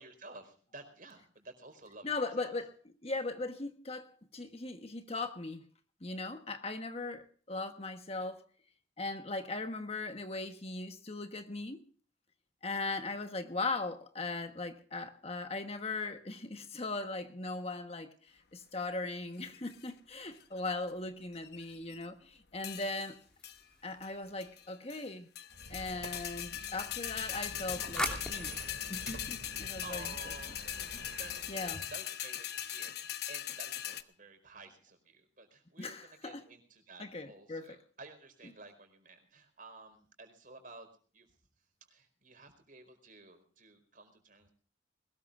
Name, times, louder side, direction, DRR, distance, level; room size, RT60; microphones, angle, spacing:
voice 1, 0.0-2.5 20.3-20.5 29.8-30.9 31.2-40.9 41.1-41.3 41.9-44.5, right 3 dB, 45° right, 4.8 m, -53 dB
voice 2, 2.0-2.7 3.0-5.6 6.0-8.4 9.0-11.8 12.6-18.1 18.5-23.2 23.8-25.3 25.7-28.6 28.9-30.1 31.1-31.2 31.5-31.8 35.8-36.4 37.0-37.8, left 3 dB, 35° left, 1.3 m, -39 dB
sound 1, 19.4-19.9 20.4-20.9 21.4-22.0 22.6-23.1 23.4-23.6 24.0-24.1 24.4-25.1 25.3-34.0, left 11 dB, 60° left, 1.0 m, -40 dB
sound 2, 23.2-24.9 27.2-30.5, left 1 dB, 5° left, 3.1 m, -43 dB
Squeak, 25.5-31.9, right 1 dB, 65° right, 2.5 m, -49 dB
22.0 x 20.0 x 2.5 m
head